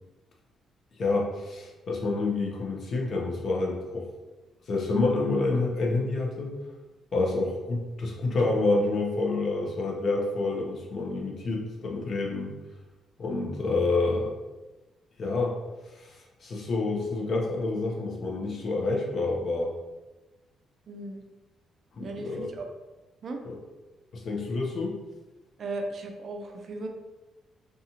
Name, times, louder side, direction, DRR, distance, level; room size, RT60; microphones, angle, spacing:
voice 1, 1.0-4.1 4.7-6.5 7.1-12.6 13.2-14.3 15.2-15.6 15.9-19.7 22.0-22.5 23.4-23.6 24.1-25.0, left 3 dB, 50° left, -1 dB, 0.6 m, -28 dB
voice 2, 20.9-21.2 22.0-22.7 23.2-23.4 25.6-26.9, right 2 dB, 50° right, 4 dB, 0.4 m, -36 dB
2.7 x 2.4 x 2.8 m, 1.1 s
cardioid pair, 110°, 0 cm